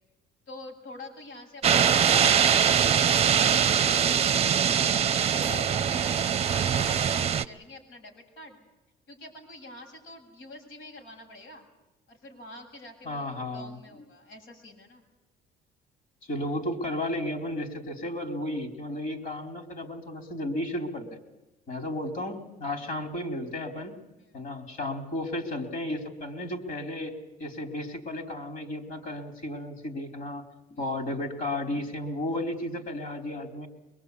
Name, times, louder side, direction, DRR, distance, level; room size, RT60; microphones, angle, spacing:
voice 1, 0.5-6.4 6.6-8.6 9.1-11.7 12.1-13.3 13.5-15.0 22.8-22.9 24.2-24.4 30.7-30.9, left 2 dB, 85° left, 1 dB, 7.8 m, -47 dB
sound 1, 1.6-7.4, right 8 dB, 35° right, 0.8 m, -22 dB
voice 2, 13.0-13.8 16.3-21.1 21.7-23.9 24.3-27.1 27.4-30.4 30.8-33.7, left 1 dB, 55° left, 4 dB, 4.2 m, -33 dB
23.5 x 22.5 x 8.5 m, 1.0 s
cardioid pair, 110°, 17 cm